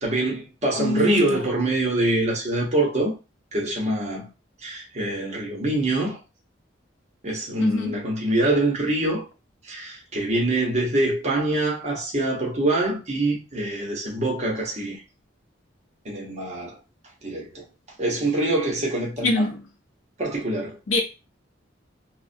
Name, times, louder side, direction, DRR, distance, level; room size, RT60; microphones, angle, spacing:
voice 1, 0.0-3.1 3.5-4.3 4.6-6.2 7.2-9.2 9.7-15.0 16.0-16.8 17.2-17.6 18.0-19.5 20.2-20.8, right 2 dB, 35° right, 0.9 m, -24 dB
voice 2, 0.8-1.2 7.6-7.9 19.2-19.6 20.9-21.0, left 2 dB, 85° left, 0.6 m, -23 dB
2.2 x 2.1 x 2.6 m
head